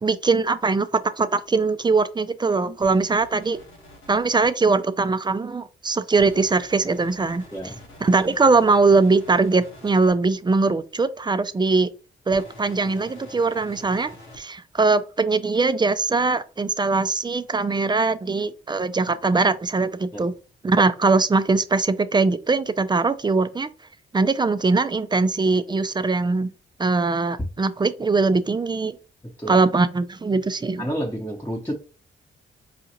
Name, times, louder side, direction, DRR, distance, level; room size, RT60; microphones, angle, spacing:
voice 1, 0.0-3.6 4.1-7.4 8.0-11.9 12.3-14.1 14.4-20.3 20.6-23.7 24.1-26.5 26.8-29.0 29.5-30.9, right 3 dB, 20° right, 0.4 m, -21 dB
sound 1, 2.8-4.5 6.2-10.1 12.3-14.4, left 1 dB, 80° left, 1.3 m, -46 dB
voice 2, 29.2-29.6 30.8-31.7, equal, 10° left, 0.9 m, -30 dB
4.9 x 2.4 x 2.9 m
supercardioid pair, 55°, 21 cm